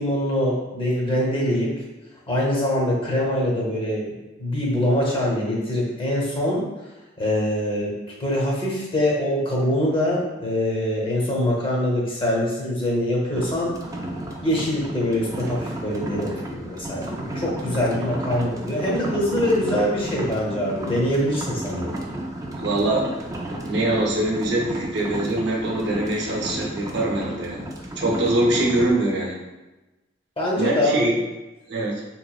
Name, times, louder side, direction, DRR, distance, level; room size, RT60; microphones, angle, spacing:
voice 1, 0.0-1.7 2.3-4.1 4.4-6.7 7.2-7.9 8.2-13.7 14.4-22.0 30.4-31.1, left 1 dB, 30° left, -3 dB, 0.8 m, -24 dB
sound 1, 13.3-28.9, right 1 dB, 20° right, 0.3 m, -33 dB
voice 2, 22.6-23.1 23.5-27.6 28.0-29.4 30.6-31.2 31.7-32.0, right 1 dB, 60° right, -3 dB, 0.7 m, -23 dB
3.7 x 2.9 x 2.3 m, 1.1 s
head